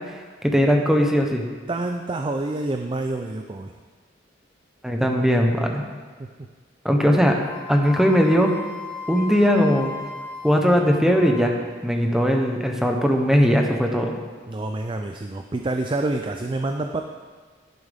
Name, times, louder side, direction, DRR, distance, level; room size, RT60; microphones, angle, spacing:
voice 1, 0.4-1.5 4.8-5.8 6.8-7.4 7.7-8.5 9.1-9.9 10.4-11.6 11.8-14.1, equal, ahead, 2 dB, 0.9 m, -19 dB
voice 2, 1.7-3.7 6.2-6.3 14.5-17.0, right 2 dB, 25° right, 5 dB, 0.4 m, -27 dB
Wind instrument woodwind instrument, 7.5-11.6, left 4 dB, 20° left, 2.8 m, -36 dB
11.0 x 10.0 x 3.5 m, 1.5 s
head